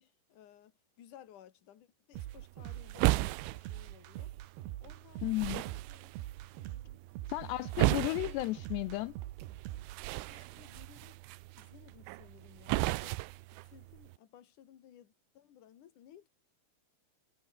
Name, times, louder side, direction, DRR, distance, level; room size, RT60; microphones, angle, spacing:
voice 1, 0.0-4.3 4.8-6.1 6.5-7.0 7.9-8.5 10.3-11.2 11.6-13.2 13.5-16.3, left 10 dB, 50° left, 2.9 m, -58 dB
sound 1, 2.1-14.2, right 20 dB, 85° right, 3.1 m, -36 dB
sound 2, 2.2-10.0, right 14 dB, 70° right, 2.8 m, -44 dB
voice 2, 5.2-5.6 7.3-9.2, left 19 dB, 85° left, 2.5 m, -34 dB
omnidirectional pair, 5.6 m